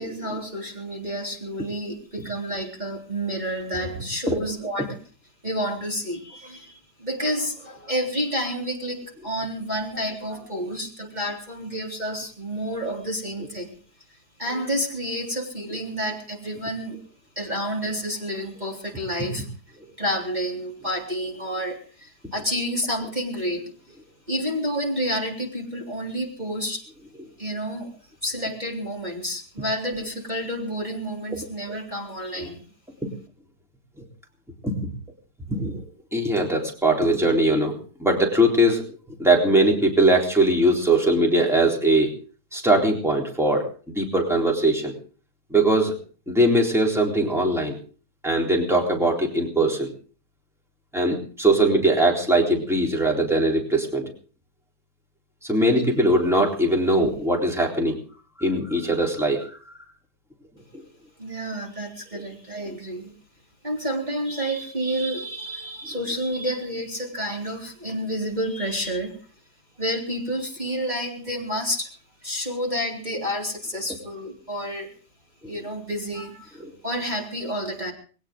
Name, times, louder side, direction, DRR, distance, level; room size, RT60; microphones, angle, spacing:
voice 1, 0.0-5.0 5.4-13.7 14.4-17.0 17.4-19.5 20.0-23.7 24.3-26.8 27.4-27.9 28.2-32.6 61.2-63.1 63.6-69.2 69.8-71.9 72.2-74.9 75.5-77.9, equal, 25° right, -2 dB, 3.6 m, -29 dB
voice 2, 35.5-35.8 36.1-37.8 38.0-38.9 39.2-42.1 42.5-44.9 45.5-45.9 46.3-47.8 48.2-49.9 50.9-54.1 55.4-58.0 58.4-59.6 75.4-75.5 76.6-76.7, right 1 dB, ahead, 0 dB, 3.7 m, -21 dB
21.0 x 18.5 x 3.8 m, 0.40 s
omnidirectional pair, 1.8 m